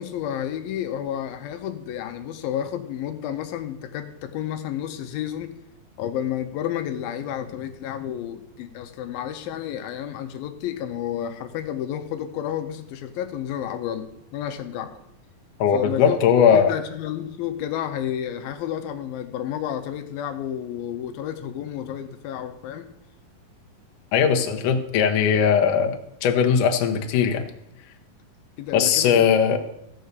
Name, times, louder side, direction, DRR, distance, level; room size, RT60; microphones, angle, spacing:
voice 1, 0.0-5.6 6.0-15.0 15.7-16.2 16.5-22.9 28.6-29.3, left 10 dB, 85° left, 7 dB, 2.5 m, -31 dB
voice 2, 15.6-16.7 24.1-25.9 26.2-27.4 28.7-29.6, left 7 dB, 70° left, 4 dB, 2.3 m, -19 dB
14.5 x 5.5 x 6.6 m, 0.80 s
omnidirectional pair, 4.1 m